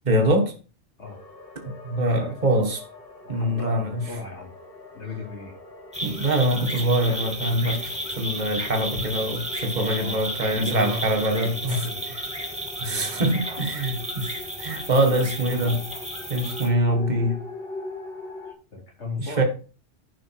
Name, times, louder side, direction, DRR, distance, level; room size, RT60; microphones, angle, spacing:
voice 1, 0.1-0.5 1.8-2.8 3.3-4.0 6.0-7.9 8.2-11.8 12.8-14.3 14.6-15.8 16.3-17.4 19.4-19.5, right 1 dB, 40° right, 1.8 m, -23 dB
sound 1, 1.0-18.5, left 2 dB, 50° left, 2.4 m, -42 dB
voice 2, 2.0-2.4 3.2-4.5 4.9-5.5 10.0-10.2 10.5-12.1 12.8-13.3 18.5-19.4, left 2 dB, 70° left, 4.1 m, -36 dB
sound 2, 5.9-16.7, equal, 5° right, 2.0 m, -33 dB
11.0 x 5.7 x 4.5 m
omnidirectional pair, 1.2 m